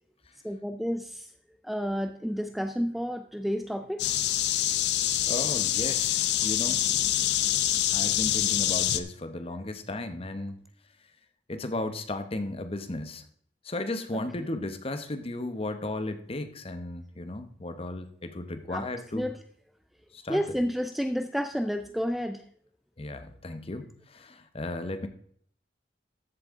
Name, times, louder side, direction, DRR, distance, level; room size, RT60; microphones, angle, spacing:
voice 1, 0.4-1.3 1.6-4.1 14.1-14.2 18.7-18.9 19.1-19.4 20.3-22.4, equal, ahead, 8 dB, 0.3 m, -30 dB
sound 1, 4.0-9.0, left 12 dB, 65° left, 0.6 m, -26 dB
voice 2, 5.3-6.8 7.9-10.6 11.5-13.2 13.6-19.3 20.1-20.4 23.0-25.1, left 2 dB, 30° left, 9 dB, 0.9 m, -35 dB
14.0 x 7.6 x 3.6 m, 0.63 s
head